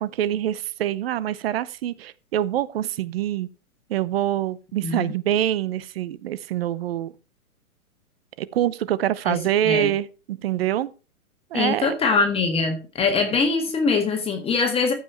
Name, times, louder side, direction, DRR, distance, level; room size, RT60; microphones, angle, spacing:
voice 1, 0.0-3.5 3.9-7.1 8.4-10.9 11.5-11.9, right 12 dB, 45° right, 0.7 m, -25 dB
voice 2, 11.5-14.9, left 4 dB, 15° left, 1.6 m, -22 dB
14.0 x 5.5 x 4.4 m
hypercardioid pair, 140°, 44 cm